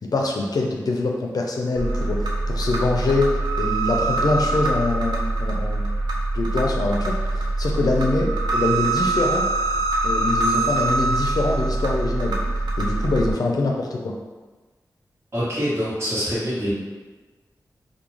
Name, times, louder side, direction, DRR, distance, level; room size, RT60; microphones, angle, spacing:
voice 1, 0.0-2.2 2.5-5.9 6.3-9.4 10.0-12.4 12.8-14.2, left 2 dB, 65° left, 0 dB, 0.4 m, -24 dB
sound 1, 1.7-13.3, right 2 dB, 80° right, 0.5 m, -24 dB
voice 2, 15.3-16.7, equal, 40° right, -8 dB, 1.2 m, -25 dB
2.3 x 2.2 x 3.0 m, 1.3 s
cardioid pair, 45°, 7 cm